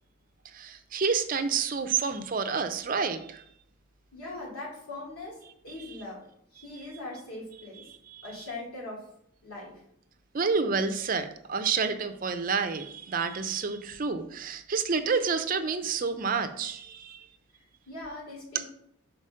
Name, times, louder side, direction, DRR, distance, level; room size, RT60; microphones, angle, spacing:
voice 1, 0.4-3.4 5.9-6.0 8.1-8.3 10.3-17.3, right 5 dB, 40° right, 8 dB, 0.5 m, -29 dB
voice 2, 4.1-6.2 6.5-7.9 8.2-9.1 9.4-9.8 17.5-18.7, left 2 dB, 85° left, -4 dB, 2.8 m, -41 dB
5.0 x 4.5 x 5.5 m, 0.72 s
head